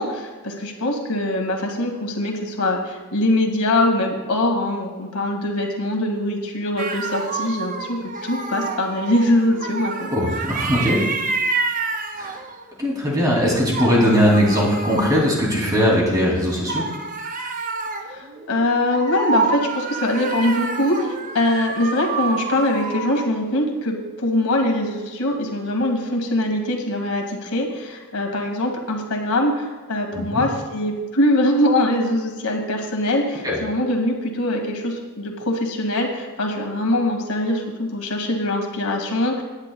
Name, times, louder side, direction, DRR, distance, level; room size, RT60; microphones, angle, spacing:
voice 1, 0.0-10.1 18.1-39.4, left 1 dB, 85° left, 2 dB, 2.0 m, -22 dB
sound 1, 6.8-12.7 13.5-16.0 16.7-23.2, right 4 dB, 35° right, 0.6 m, -28 dB
voice 2, 10.1-11.1 12.2-12.4 12.8-16.9 30.1-30.5 33.4-33.6, equal, 15° right, -3 dB, 2.7 m, -19 dB
18.0 x 10.5 x 2.3 m, 1.2 s
head